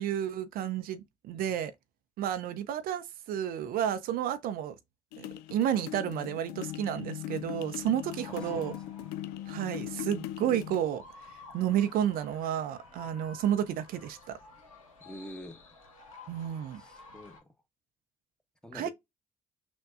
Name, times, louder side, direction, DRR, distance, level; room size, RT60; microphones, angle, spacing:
voice 1, 0.0-1.7 2.2-4.7 5.2-5.3 5.5-8.8 9.5-11.0 11.5-14.4 16.3-16.8 18.7-18.9, right 10 dB, 60° right, 0.6 m, -31 dB
sound 1, 5.1-10.8, left 13 dB, 65° left, 0.4 m, -40 dB
sound 2, 8.0-17.4, left 3 dB, 85° left, 0.8 m, -52 dB
voice 2, 15.0-15.6 16.8-17.4 18.6-18.9, equal, 5° left, 1.0 m, -46 dB
6.1 x 2.2 x 2.5 m
figure-of-eight pair, 45°, 17 cm